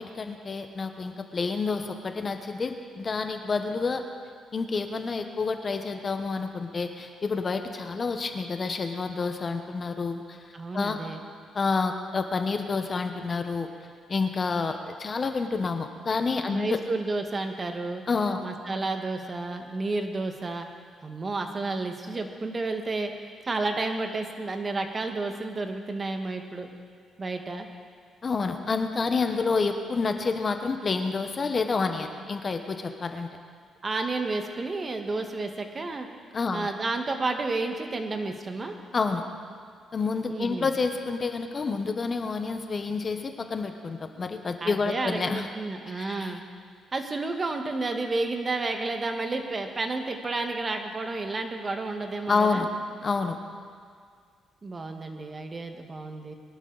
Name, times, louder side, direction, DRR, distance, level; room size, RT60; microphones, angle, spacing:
voice 1, 0.0-4.0 4.5-10.4 10.7-11.0 11.5-13.7 14.1-16.8 18.1-18.5 28.2-33.3 36.3-36.7 38.9-39.2 39.9-45.5 45.9-46.4 52.3-52.7 53.0-53.4, left 4 dB, 35° left, 6 dB, 1.1 m, -28 dB
voice 2, 10.5-11.2 16.5-18.0 18.4-20.7 21.0-23.1 23.5-26.7 27.2-27.7 33.8-36.1 36.5-38.8 40.2-40.7 44.6-46.4 46.9-52.7 54.6-56.3, right 3 dB, 30° right, 5 dB, 1.6 m, -31 dB
22.0 x 11.5 x 4.1 m, 2.1 s
cardioid pair, 90°, 0 cm